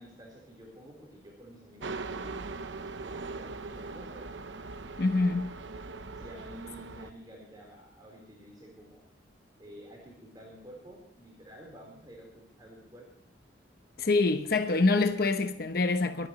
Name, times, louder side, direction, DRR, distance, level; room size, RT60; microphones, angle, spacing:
voice 1, 0.0-2.3 3.0-4.2 6.1-9.0 9.6-13.1, right 1 dB, 20° right, 4.1 m, -50 dB
sound 1, 1.8-7.1, right 3 dB, 80° right, 0.9 m, -40 dB
voice 2, 5.0-5.6 14.0-16.3, left 3 dB, 55° left, 0.9 m, -26 dB
25.5 x 10.0 x 3.1 m
head